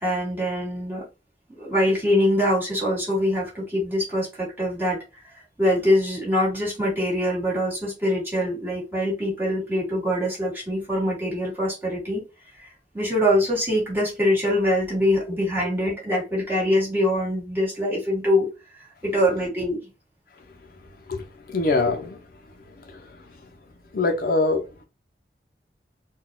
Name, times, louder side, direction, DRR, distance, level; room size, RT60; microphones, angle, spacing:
voice 1, 0.0-1.0 1.6-5.0 5.6-12.2 12.6-12.7 12.9-18.5 19.0-19.9, left 1 dB, 10° right, 1.7 m, -23 dB
voice 2, 21.1-22.2 22.9-23.0 23.9-24.7, left 3 dB, 55° left, 0.6 m, -23 dB
4.0 x 2.3 x 2.2 m
head